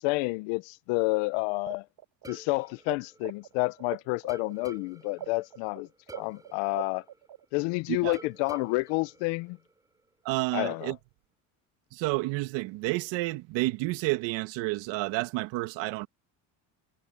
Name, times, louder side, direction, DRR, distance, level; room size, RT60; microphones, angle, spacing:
voice 1, 0.0-1.8 2.3-5.9 6.2-7.0 7.5-9.6 10.5-10.9, left 25 dB, 80° left, 0.9 m, -29 dB
sound 1, 1.6-2.9 3.2-7.7, right 11 dB, 60° right, 3.3 m, -42 dB
sound 2, 2.2-3.8 4.3-7.7 8.1-10.1, right 2 dB, 10° right, 2.8 m, -51 dB
voice 2, 10.3-11.0 11.9-16.1, right 21 dB, 75° right, 1.7 m, -30 dB
supercardioid pair, 90°, 44 cm